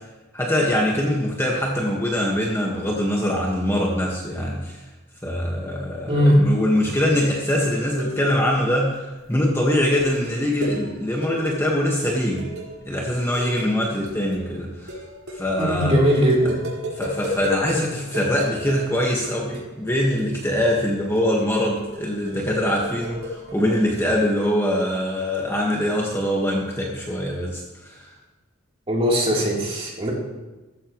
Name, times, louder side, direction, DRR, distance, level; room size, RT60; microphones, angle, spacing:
voice 1, 0.3-4.8 5.2-9.0 9.3-12.5 12.8-15.0 15.3-15.9 17.0-28.1, left 1 dB, 10° left, -2 dB, 1.6 m, -23 dB
voice 2, 6.1-6.4 15.6-16.6 28.9-30.1, equal, 30° right, -4 dB, 3.6 m, -19 dB
sound 1, 6.9-7.2 7.5-8.5 8.7-9.1 9.8-17.8 18.1-20.3 20.6-24.1, left 1 dB, 85° right, 4.2 m, -35 dB
16.0 x 14.5 x 3.2 m, 1.1 s
head